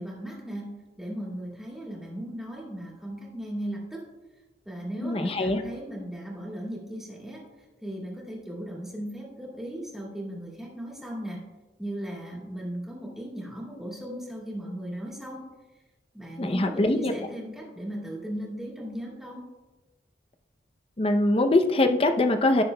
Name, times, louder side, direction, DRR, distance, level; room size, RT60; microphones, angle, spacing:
voice 1, 0.0-4.0 4.7-7.4 7.8-11.4 11.8-15.4 16.1-19.4, right 1 dB, 5° right, -4 dB, 1.9 m, -37 dB
voice 2, 5.0-5.6 16.4-17.1 21.0-22.6, left 2 dB, 30° left, 6 dB, 0.5 m, -23 dB
16.0 x 6.1 x 2.2 m, 1.1 s
head